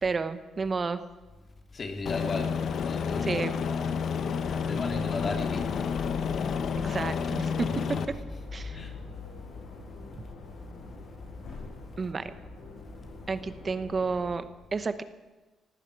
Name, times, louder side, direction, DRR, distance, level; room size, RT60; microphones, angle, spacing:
voice 1, 0.0-1.0 3.2-3.6 6.8-7.7 8.5-8.8 12.0-12.3 13.3-14.4 14.7-15.0, right 4 dB, 35° right, 1.1 m, -31 dB
voice 2, 1.7-2.5 2.8-3.9 4.7-5.9 7.6-8.0 8.7-8.9, left 3 dB, 40° left, 2.7 m, -36 dB
Aircraft, 2.1-8.1, left 6 dB, 60° left, 1.2 m, -30 dB
sound 1, 4.5-14.3, left 2 dB, 80° left, 7.8 m, -46 dB
19.5 x 15.5 x 4.8 m
cardioid pair, 90°, 0 cm